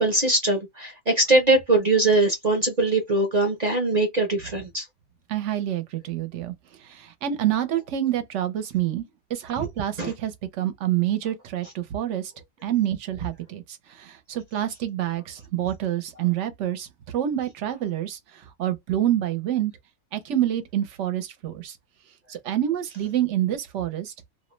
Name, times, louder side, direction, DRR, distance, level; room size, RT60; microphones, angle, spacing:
voice 1, 0.0-4.8 10.0-10.1, right 2 dB, 45° right, 0.5 m, -21 dB
voice 2, 5.3-12.3 12.6-19.7 20.1-21.8 22.3-24.1, right 12 dB, 65° right, 0.9 m, -27 dB
2.5 x 2.1 x 3.0 m
omnidirectional pair, 1.5 m